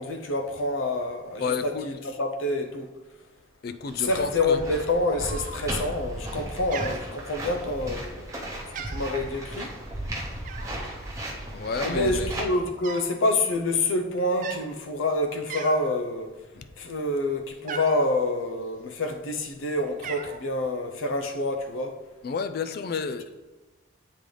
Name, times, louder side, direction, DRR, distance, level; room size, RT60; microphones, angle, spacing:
voice 1, 0.0-2.9 3.9-9.7 11.8-16.3 16.8-22.0, left 2 dB, 80° left, 0.6 m, -27 dB
voice 2, 1.4-1.9 3.6-4.6 11.5-12.3 16.5-16.7 22.2-23.5, left 5 dB, 50° left, 0.3 m, -31 dB
sound 1, 3.9-12.4, right 1 dB, 15° right, 0.8 m, -35 dB
Cat, 5.3-5.9 6.2-6.5 6.7-7.7 8.2-8.4 8.6-9.2 10.4-10.9 11.7-11.8 12.0-13.1 13.4-13.7 14.3-14.6 15.1-15.2 15.5-16.0 16.4-18.1 18.9-19.5 19.7-20.4, right 5 dB, 40° right, 0.4 m, -38 dB
8.4 x 3.8 x 3.3 m
head